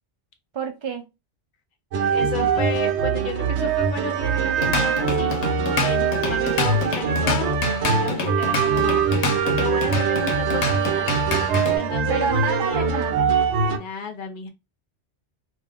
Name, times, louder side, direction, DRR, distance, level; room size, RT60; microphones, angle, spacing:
voice 1, 0.5-1.1 12.1-13.3, right 6 dB, 30° right, 4 dB, 0.6 m, -28 dB
sound 1, 1.9-13.8, right 6 dB, 80° right, 0.9 m, -23 dB
voice 2, 2.0-5.5 5.8-11.2 11.7-12.9 13.8-14.5, left 4 dB, 50° left, 4 dB, 0.8 m, -33 dB
Drum kit / Drum, 4.4-11.8, left 2 dB, 85° left, 1.0 m, -27 dB
2.6 x 2.3 x 3.4 m, 0.24 s
omnidirectional pair, 1.1 m